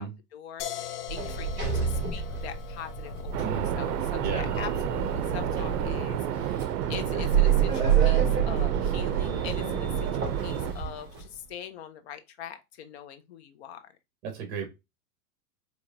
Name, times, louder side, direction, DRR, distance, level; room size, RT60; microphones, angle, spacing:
voice 1, 0.0-13.9, left 9 dB, 45° left, 0.6 m, -43 dB
sound 1, 0.6-6.4, left 10 dB, 80° left, 0.8 m, -42 dB
Sliding door, 1.1-11.2, right 7 dB, 20° right, 2.2 m, -28 dB
sound 2, 3.3-10.7, right 11 dB, 75° right, 0.6 m, -31 dB
voice 2, 3.4-3.8 4.2-4.5 14.2-14.7, right 6 dB, 45° right, 1.4 m, -34 dB
4.5 x 2.9 x 2.6 m
supercardioid pair, 165°, 47 cm